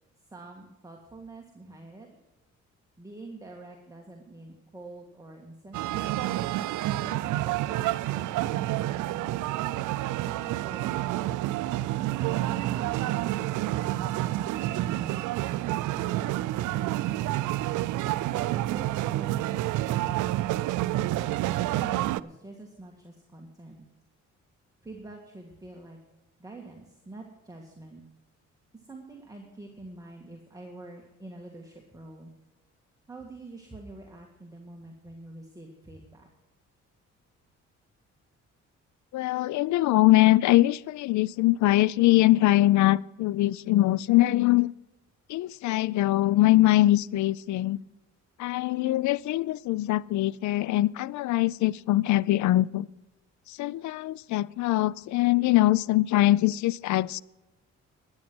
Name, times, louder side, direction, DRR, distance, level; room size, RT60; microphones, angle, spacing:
voice 1, 0.3-2.1 3.0-6.1 7.0-9.9 10.4-11.4 18.3-20.5 21.7-23.8 24.8-26.0 26.4-28.0 28.7-32.3 33.1-36.3, right 2 dB, 10° right, 1 dB, 1.7 m, -46 dB
sound 1, 5.7-22.2, right 15 dB, 80° right, 0.5 m, -29 dB
voice 2, 39.1-44.7 45.3-47.8 48.4-52.9 53.5-57.2, left 16 dB, 70° left, 23 dB, 0.5 m, -22 dB
12.5 x 9.7 x 6.1 m, 1.0 s
cardioid pair, 90°, 30 cm